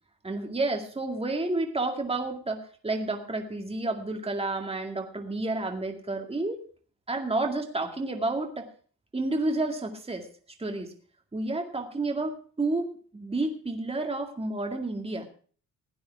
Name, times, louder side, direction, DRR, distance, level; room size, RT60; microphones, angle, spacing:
voice 1, 0.2-6.6 7.1-8.7 9.1-10.3 10.6-10.9 11.3-15.3, right 2 dB, 15° right, 3 dB, 2.1 m, -30 dB
16.5 x 9.4 x 4.6 m, 0.43 s
cardioid pair, 90°, 45 cm